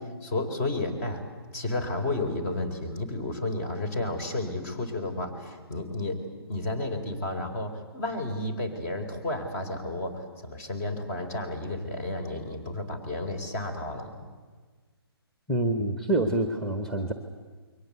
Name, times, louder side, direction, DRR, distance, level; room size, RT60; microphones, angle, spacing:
voice 1, 0.2-1.2 1.5-14.2, left 2 dB, 35° left, 5 dB, 4.5 m, -32 dB
voice 2, 15.5-17.1, right 2 dB, 5° left, 7 dB, 1.4 m, -26 dB
28.0 x 23.0 x 8.2 m, 1.4 s
figure-of-eight pair, 135°, 13 cm